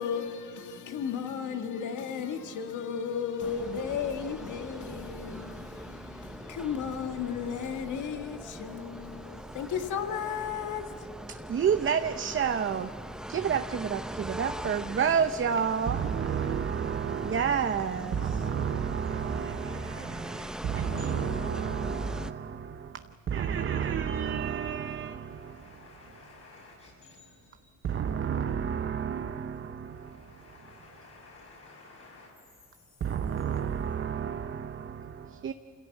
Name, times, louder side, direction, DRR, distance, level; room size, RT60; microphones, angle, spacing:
voice 1, 0.0-11.1, left 7 dB, 80° left, 1.8 m, -34 dB
sound 1, 3.4-22.3, right 1 dB, ahead, 0.7 m, -41 dB
voice 2, 11.3-12.9 13.3-25.7 27.8-30.4 33.0-35.5, right 7 dB, 40° right, 0.8 m, -30 dB
voice 3, 20.8-22.5 24.1-24.2 24.9-27.7 29.1-29.3 29.7-33.4, left 2 dB, 50° left, 6.0 m, -50 dB
25.5 x 16.5 x 8.3 m
cardioid pair, 90°, 30 cm